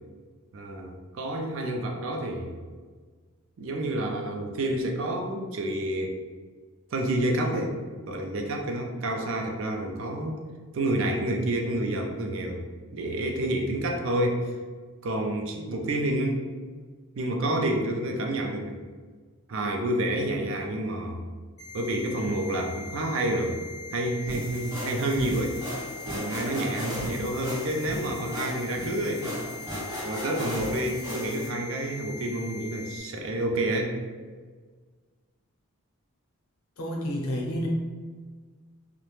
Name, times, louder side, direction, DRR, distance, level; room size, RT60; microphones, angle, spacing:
voice 1, 0.5-2.5 3.6-6.2 6.9-7.8 8.1-10.4 10.7-12.6 12.9-14.5 15.0-16.5 17.1-18.8 19.5-21.2 21.7-23.6 23.9-25.6 26.1-29.4 30.0-34.0, right 1 dB, 60° right, 2 dB, 0.4 m, -29 dB
sound 1, 21.6-33.0, left 4 dB, 30° left, 0.6 m, -42 dB
sound 2, 24.3-31.5, equal, 20° right, 1.2 m, -36 dB
voice 2, 36.8-37.7, equal, 80° left, -1 dB, 0.6 m, -30 dB
2.4 x 2.1 x 3.0 m, 1.5 s
head